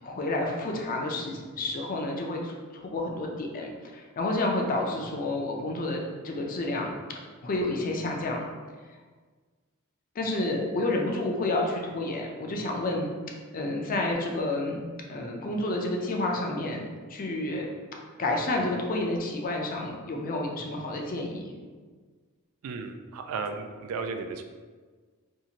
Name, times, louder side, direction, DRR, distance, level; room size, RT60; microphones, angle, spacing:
voice 1, 0.0-6.9 7.4-8.4 10.2-13.1 13.5-14.8 15.1-16.8 17.1-17.7 18.2-21.5, left 2 dB, 40° left, 0 dB, 0.4 m, -30 dB
voice 2, 22.6-24.4, right 4 dB, 90° right, 11 dB, 0.3 m, -34 dB
2.7 x 2.5 x 2.8 m, 1.5 s
head